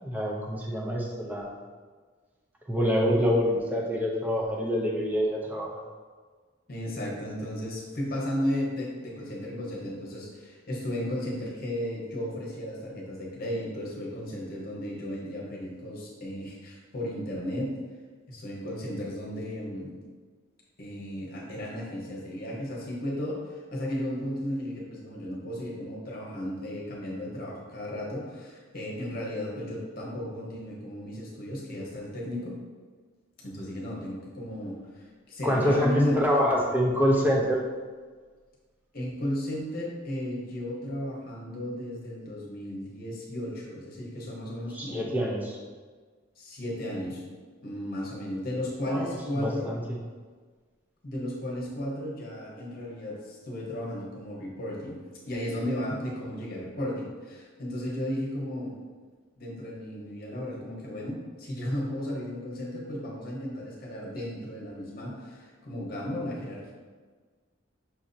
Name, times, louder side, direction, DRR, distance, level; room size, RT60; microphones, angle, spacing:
voice 1, 0.0-1.5 2.7-5.7 35.4-37.6 44.7-45.6 48.9-50.0, equal, 10° right, -3 dB, 0.6 m, -26 dB
voice 2, 6.7-17.7 18.3-19.9 20.8-32.5 33.4-34.7 35.3-36.3 38.9-45.1 46.4-47.2 47.6-49.7 51.0-55.0 55.3-58.7 59.4-66.7, equal, 50° left, -4 dB, 1.0 m, -34 dB
5.9 x 2.7 x 2.6 m, 1.5 s
head